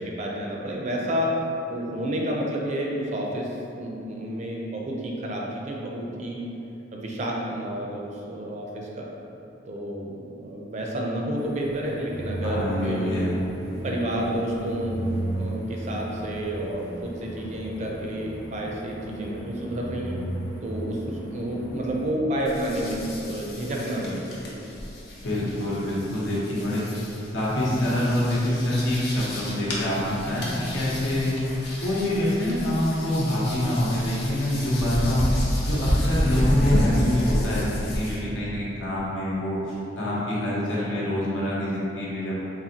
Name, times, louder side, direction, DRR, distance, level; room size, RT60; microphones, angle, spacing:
voice 1, 0.0-1.4 1.6-6.4 6.7-9.1 9.7-13.2 13.7-15.0 15.3-20.2 20.6-24.6, equal, 40° right, -2 dB, 0.4 m, -30 dB
sound 1, 11.3-22.1, right 1 dB, 15° left, 0.5 m, -35 dB
voice 2, 12.4-13.3 25.2-26.9 27.3-31.4 31.8-35.3 35.7-42.4, left 1 dB, 85° left, -7 dB, 1.0 m, -25 dB
sound 2, 22.5-38.2, equal, 60° left, 0.7 m, -30 dB
4.1 x 2.6 x 2.8 m, 2.8 s
head